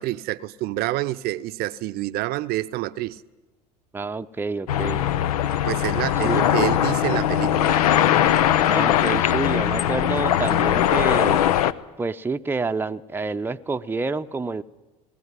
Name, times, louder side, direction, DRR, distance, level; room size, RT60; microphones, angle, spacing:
voice 1, 0.0-3.2 5.6-7.7, right 16 dB, 55° right, 0.7 m, -27 dB
voice 2, 3.9-5.1 6.2-6.4 8.7-11.4 12.0-14.6, right 3 dB, 10° right, 0.7 m, -28 dB
sound 1, 4.7-11.7, left 11 dB, 80° left, 0.7 m, -20 dB
19.5 x 15.5 x 9.7 m
hypercardioid pair, 75°, 19 cm